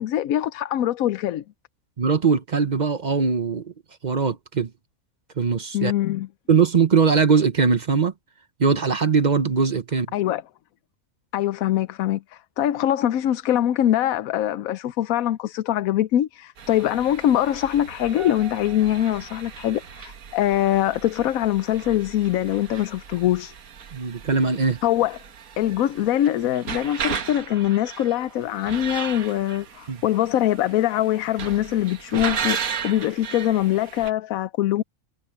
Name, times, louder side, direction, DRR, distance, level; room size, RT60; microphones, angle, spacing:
voice 1, 0.0-1.4 5.7-6.3 10.1-10.4 11.3-23.5 24.8-25.2 25.6-34.8, left 12 dB, 80° left, 1.1 m, -23 dB
voice 2, 2.0-3.7 4.0-4.7 5.4-5.9 6.5-8.1 8.6-10.1 23.9-24.8 29.9-30.0, right 5 dB, 40° right, 0.8 m, -21 dB
sound 1, 16.6-34.1, right 7 dB, 85° right, 1.6 m, -36 dB
omnidirectional pair, 1.4 m